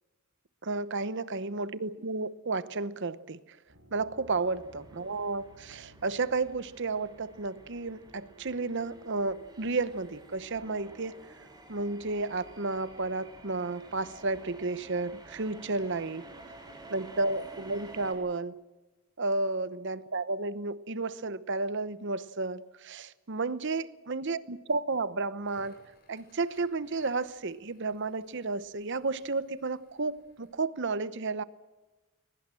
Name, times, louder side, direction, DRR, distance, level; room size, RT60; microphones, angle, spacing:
voice 1, 0.6-3.6 3.9-11.3 11.7-16.3 16.9-18.6 19.2-25.8 26.1-31.4, right 3 dB, 55° right, 0.9 m, -32 dB
sound 1, 3.7-11.6, right 1 dB, 85° right, 6.1 m, -61 dB
sound 2, 4.4-18.1, right 2 dB, 20° right, 6.5 m, -51 dB
Crackle, 25.3-30.6, left 2 dB, 45° left, 7.5 m, -62 dB
22.0 x 20.5 x 7.6 m
head